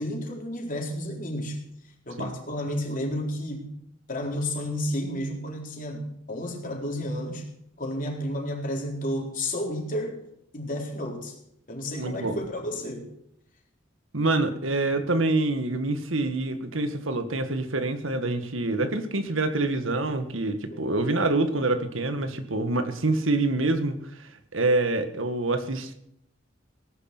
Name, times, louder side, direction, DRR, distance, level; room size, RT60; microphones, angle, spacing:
voice 1, 0.0-1.6 2.1-3.7 4.1-7.4 7.8-10.2 10.5-11.3 11.7-13.1 20.7-20.8, left 1 dB, 45° left, 1 dB, 4.2 m, -31 dB
voice 2, 11.9-12.4 14.1-23.9 24.5-25.9, right 2 dB, 90° right, 8 dB, 1.8 m, -26 dB
18.0 x 11.0 x 6.1 m, 0.74 s
head